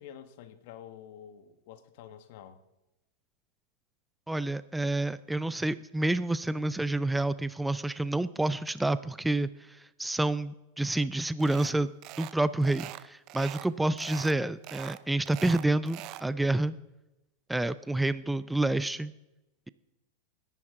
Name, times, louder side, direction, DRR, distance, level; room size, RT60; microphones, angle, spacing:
voice 1, 0.0-2.6, left 9 dB, 65° left, 1.4 m, -48 dB
voice 2, 4.3-11.9 12.2-16.8 17.5-19.1, right 2 dB, 5° right, 0.5 m, -29 dB
sound 1, 11.4-11.7 12.0-12.4 12.6-13.7 14.0-14.4 14.6-16.3, right 16 dB, 50° right, 0.6 m, -42 dB
21.5 x 10.5 x 3.7 m
hypercardioid pair, 110°, 0 cm